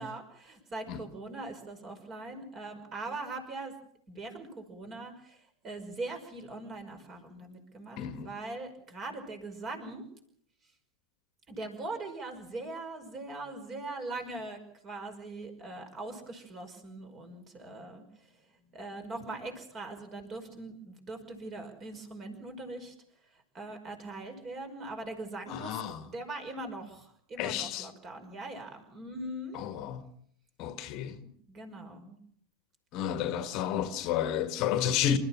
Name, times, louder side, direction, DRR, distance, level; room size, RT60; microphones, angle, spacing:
voice 1, 0.0-3.7 4.1-10.0 11.5-18.3 18.7-22.9 23.5-29.6 31.2-32.2, right 2 dB, 25° right, 5.4 m, -41 dB
voice 2, 8.0-8.3 25.5-26.0 27.4-27.9 29.5-30.0 30.6-31.2 32.9-35.2, left 10 dB, 40° left, 1.6 m, -31 dB
28.0 x 14.0 x 7.5 m
figure-of-eight pair, 90°, 0 cm